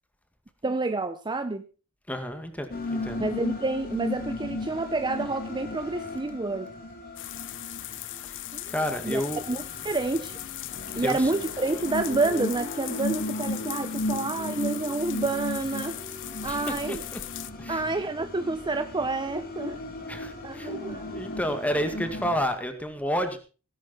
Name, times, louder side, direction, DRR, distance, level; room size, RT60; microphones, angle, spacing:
voice 1, 0.6-1.7 3.2-6.7 8.5-8.6 9.0-9.2 9.5-10.4 10.9-16.0 16.4-17.0 17.7-19.8 20.4-21.2, right 3 dB, 20° right, 0.7 m, -29 dB
voice 2, 2.1-3.3 8.2-8.4 8.7-9.4 11.0-11.3 16.5-17.2 17.6-17.8 20.1-20.7 21.1-23.4, equal, 5° left, 2.1 m, -30 dB
sound 1, 2.7-22.4, left 2 dB, 45° left, 3.0 m, -36 dB
sound 2, 7.2-17.5, left 14 dB, 60° left, 0.8 m, -39 dB
17.5 x 11.0 x 4.4 m
head